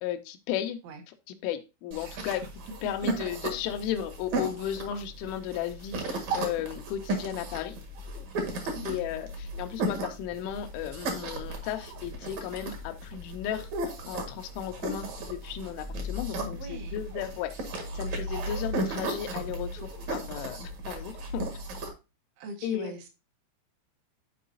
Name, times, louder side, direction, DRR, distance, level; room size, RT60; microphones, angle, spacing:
voice 1, 0.0-0.8 1.4-2.4 2.8-7.8 8.9-9.3 9.6-13.7 14.1-17.5 18.0-21.5 22.6-22.9, left 10 dB, 85° left, 3.1 m, -34 dB
sound 1, 1.9-21.9, right 2 dB, 65° right, 1.9 m, -35 dB
voice 2, 2.0-2.5 2.8-3.3 8.7-9.0 16.3-17.0 22.4-23.1, right 3 dB, 80° right, 3.1 m, -42 dB
12.0 x 4.7 x 2.7 m
omnidirectional pair, 5.7 m